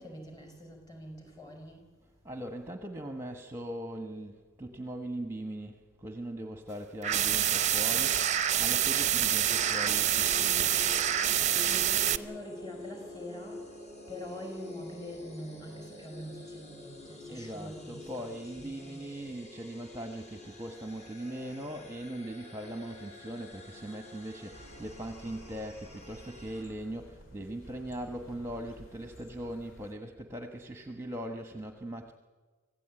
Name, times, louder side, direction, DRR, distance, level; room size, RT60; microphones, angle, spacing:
voice 1, 0.0-1.9 11.1-19.1, equal, 20° left, 3 dB, 5.4 m, -45 dB
voice 2, 2.2-5.8 6.0-10.7 17.3-32.1, right 1 dB, 10° right, 5 dB, 1.2 m, -40 dB
sound 1, 7.0-12.2, right 10 dB, 35° right, 0.7 m, -27 dB
sound 2, 9.5-26.6, left 2 dB, 35° left, 4.3 m, -48 dB
sound 3, 24.5-29.9, equal, 70° left, 3.1 m, -53 dB
25.5 x 16.0 x 9.0 m, 1.4 s
head